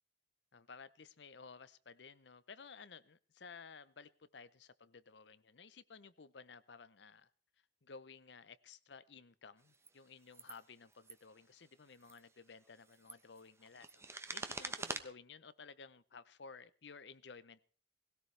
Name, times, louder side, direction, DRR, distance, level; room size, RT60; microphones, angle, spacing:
voice 1, 0.5-7.3 7.8-14.0 14.3-17.6, left 5 dB, 70° left, 0.8 m, -55 dB
sound 1, 9.7-9.9 10.3-10.6 10.9-11.2 11.9-12.2 12.8-15.0, right 3 dB, 15° right, 0.9 m, -45 dB
19.0 x 17.0 x 3.3 m
head